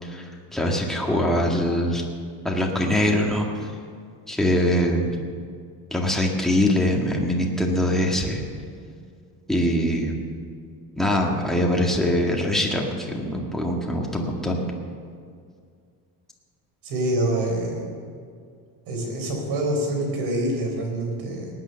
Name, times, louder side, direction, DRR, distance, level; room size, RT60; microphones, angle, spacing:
voice 1, 0.0-2.0 2.4-3.7 4.3-5.2 5.9-8.4 9.5-10.2 11.0-14.6, left 1 dB, ahead, -1 dB, 1.9 m, -23 dB
voice 2, 16.8-17.9 18.9-21.5, right 1 dB, 70° right, 1 dB, 4.5 m, -26 dB
18.5 x 9.5 x 7.0 m, 2.2 s
cardioid pair, 150°, 40 cm